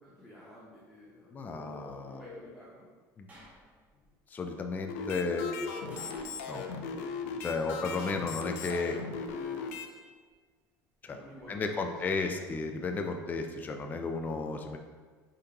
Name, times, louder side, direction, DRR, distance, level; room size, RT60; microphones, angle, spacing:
voice 1, 0.0-1.3 2.1-2.9 11.1-12.2, equal, 5° left, -7 dB, 0.9 m, -52 dB
sound 1, 1.1-2.5 3.9-4.0 4.7-6.1, left 4 dB, 40° left, 1.2 m, -42 dB
voice 2, 1.3-2.2 3.2-3.3 4.3-5.5 6.5-6.7 7.4-9.0 11.0-11.2 11.5-14.8, left 4 dB, 20° left, 4 dB, 0.4 m, -33 dB
sound 2, 3.3-4.1 5.9-6.8 8.6-9.7 11.1-11.7, equal, 20° right, 1.4 m, -53 dB
sound 3, 4.9-9.9, left 5 dB, 90° left, 0.4 m, -38 dB
4.4 x 3.7 x 2.9 m, 1.5 s
supercardioid pair, 115°, 8 cm